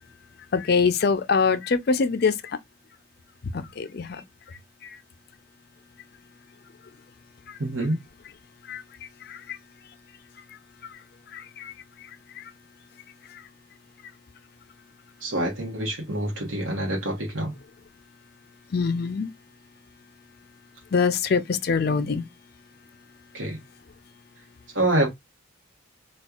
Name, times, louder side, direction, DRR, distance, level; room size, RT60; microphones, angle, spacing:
voice 1, 0.5-2.6 3.4-5.0 7.5-7.6 8.7-8.8 9.2-9.6 10.8-11.0 11.3-11.7 12.0-12.1 12.4-12.5 13.3-13.4 18.7-19.3 20.9-22.2, left 5 dB, 50° left, 0.4 m, -25 dB
voice 2, 7.6-8.0 15.2-17.5 23.3-23.6 24.7-25.1, right 1 dB, 70° right, 1.0 m, -26 dB
4.3 x 2.3 x 2.3 m
head